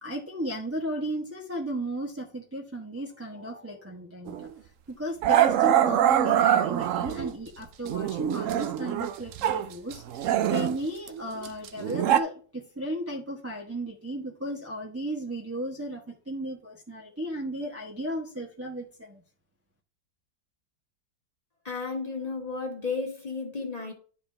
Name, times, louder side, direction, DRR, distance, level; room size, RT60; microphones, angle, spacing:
voice 1, 0.0-4.5 4.9-19.2, right 1 dB, 10° right, -3 dB, 0.9 m, -35 dB
Growling, 4.3-4.5 5.2-7.3 7.9-9.7 9.9-12.2, right 11 dB, 70° right, 0.7 m, -24 dB
voice 2, 21.6-23.9, left 4 dB, 20° left, 1 dB, 1.7 m, -33 dB
10.5 x 4.9 x 3.3 m, 0.41 s
omnidirectional pair, 2.0 m